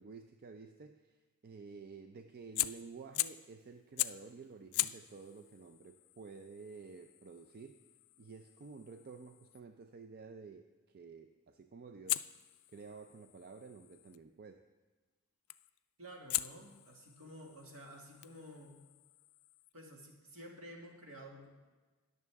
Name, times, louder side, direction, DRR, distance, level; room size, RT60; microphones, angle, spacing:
voice 1, 0.0-7.8 8.2-12.2 12.7-14.6, right 4 dB, 45° right, 7 dB, 0.4 m, -52 dB
Fire, 2.4-3.5 4.0-4.3 4.7-9.6 12.1-14.2 15.5-15.8 16.3-19.7, left 17 dB, 80° left, 0.3 m, -41 dB
voice 2, 16.0-18.8 19.7-21.5, equal, 70° right, 0 dB, 2.1 m, -52 dB
20.0 x 6.7 x 3.5 m, 1.3 s
head